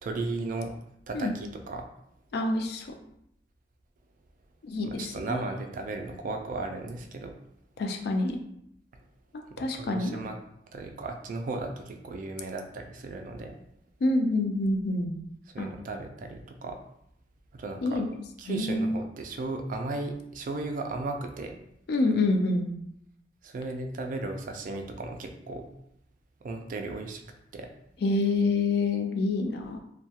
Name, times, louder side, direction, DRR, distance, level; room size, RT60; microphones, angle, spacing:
voice 1, 0.0-0.7 1.1-1.9 5.0-7.3 9.5-10.4 10.7-13.6 15.5-16.8 17.5-18.0 18.4-21.6 23.4-25.7 26.4-27.2 27.5-27.7, right 2 dB, 50° right, 5 dB, 0.3 m, -35 dB
voice 2, 2.3-2.9 4.6-5.4 7.8-8.4 9.3-10.2 14.0-15.1 15.6-15.7 17.8-18.1 18.5-19.0 21.9-22.7 28.0-29.8, left 2 dB, 65° left, 4 dB, 0.4 m, -27 dB
2.3 x 2.1 x 2.7 m, 0.75 s
head